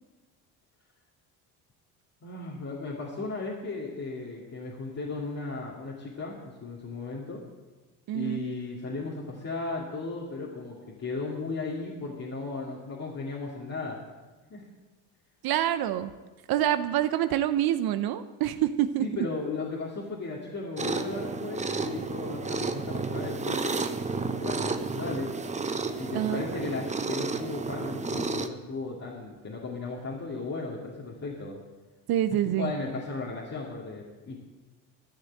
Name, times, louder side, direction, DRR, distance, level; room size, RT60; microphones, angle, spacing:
voice 1, 2.2-7.4 8.1-14.0 14.5-14.7 19.0-23.8 24.3-25.3 26.0-31.6 32.4-34.4, left 3 dB, 40° left, -4 dB, 2.5 m, -36 dB
voice 2, 8.1-8.4 15.4-16.1 16.5-19.1 26.1-26.5 32.1-32.7, right 12 dB, 60° right, 11 dB, 0.8 m, -26 dB
sound 1, 20.8-28.5, right 3 dB, 15° right, 0.9 m, -32 dB
13.5 x 6.4 x 7.9 m, 1.2 s
supercardioid pair, 75°, 40 cm